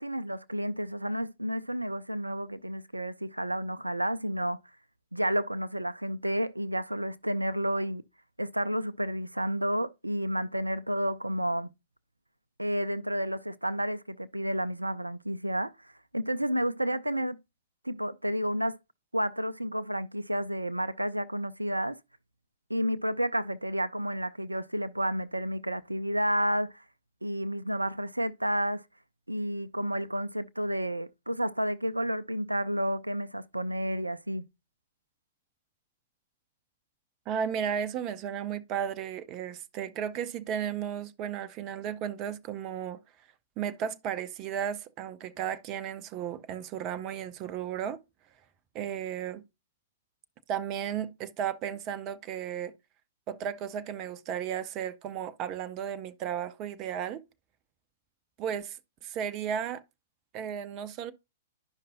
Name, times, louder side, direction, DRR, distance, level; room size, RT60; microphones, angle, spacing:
voice 1, 0.0-4.6 5.1-8.0 8.4-11.7 12.6-17.4 17.8-18.8 19.1-22.0 22.7-26.8 27.2-28.8 29.3-34.4, equal, 85° right, 0.4 m, -31 dB
voice 2, 37.3-43.0 43.6-48.0 48.7-49.4 50.5-52.7 53.3-57.2 58.4-58.8 59.0-59.8 60.3-61.1, right 9 dB, 30° right, 0.5 m, -34 dB
11.5 x 5.3 x 2.6 m
figure-of-eight pair, 110°, 0 cm